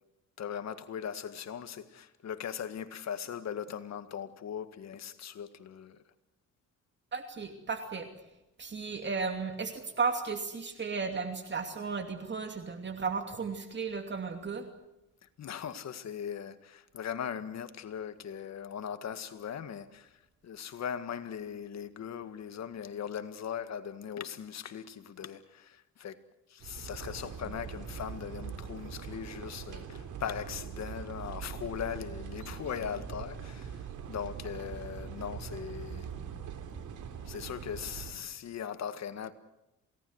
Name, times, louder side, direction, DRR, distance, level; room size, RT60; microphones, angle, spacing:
voice 1, 0.4-6.0 15.4-26.2 26.5-36.3 37.3-39.3, left 8 dB, 60° left, 1.9 m, -39 dB
voice 2, 7.1-8.1 8.6-14.7, right 5 dB, 35° right, 2.7 m, -34 dB
sound 1, 26.6-38.1, right 7 dB, 80° right, 3.7 m, -42 dB
28.0 x 18.5 x 8.1 m
cardioid pair, 90°, 30 cm